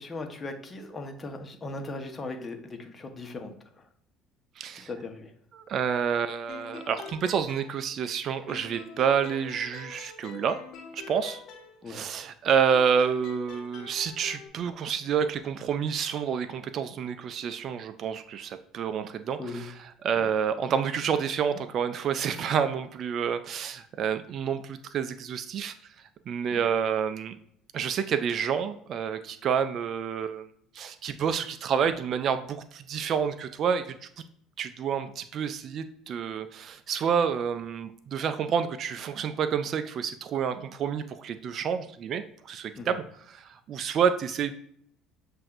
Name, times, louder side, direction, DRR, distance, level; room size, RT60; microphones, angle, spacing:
voice 1, 0.0-3.5 4.8-5.3 11.8-12.1 19.4-19.7 20.1-20.3 26.5-26.6 42.7-42.9, left 2 dB, 30° left, 5 dB, 1.0 m, -38 dB
voice 2, 4.6-4.9 5.5-10.6 10.9-11.4 11.9-25.7 26.3-27.4 27.7-30.4 30.7-34.1 34.6-44.5, right 7 dB, 50° right, 10 dB, 0.3 m, -29 dB
sound 1, 6.5-8.2 8.5-12.1 12.5-14.5, left 6 dB, 60° left, 1.1 m, -45 dB
7.5 x 2.6 x 2.5 m, 0.66 s
hypercardioid pair, 70°, 0 cm